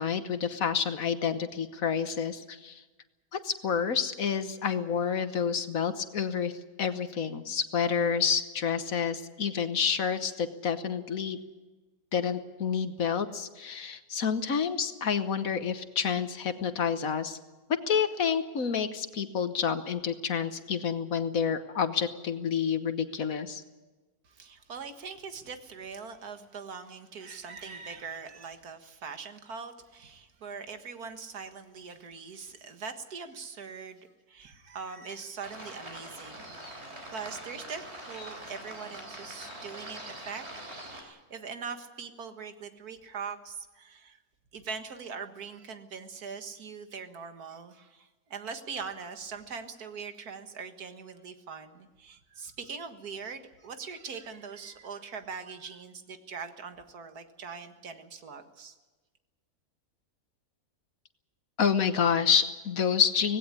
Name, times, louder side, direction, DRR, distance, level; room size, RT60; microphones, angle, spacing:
voice 1, 0.0-2.8 3.3-11.4 12.1-17.4 17.7-23.6 61.6-63.4, left 7 dB, 65° left, 11 dB, 1.5 m, -29 dB
voice 2, 24.2-36.8 37.1-40.4 40.9-44.2 44.5-58.8, right 5 dB, 80° right, 8 dB, 2.1 m, -42 dB
sound 1, 35.4-41.0, right 1 dB, 45° right, 4.0 m, -43 dB
18.5 x 17.0 x 9.7 m, 1.2 s
omnidirectional pair, 1.6 m